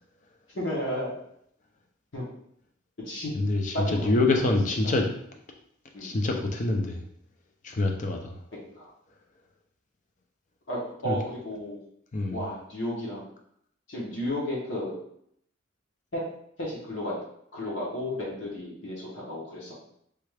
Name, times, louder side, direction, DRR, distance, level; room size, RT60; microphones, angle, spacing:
voice 1, 0.5-1.1 2.1-2.2 3.0-3.3 3.7-4.4 4.8-4.9 5.9-6.1 8.7-8.9 10.7-11.8 12.3-13.2 13.9-15.0 16.1-16.2 16.6-17.1 17.5-19.7, left 1 dB, 65° left, -5 dB, 0.9 m, -33 dB
voice 2, 3.3-5.1 6.0-7.0 7.6-8.4 11.0-11.2 12.1-12.4, left 2 dB, 40° left, 2 dB, 0.5 m, -26 dB
3.3 x 2.3 x 3.3 m, 0.70 s
head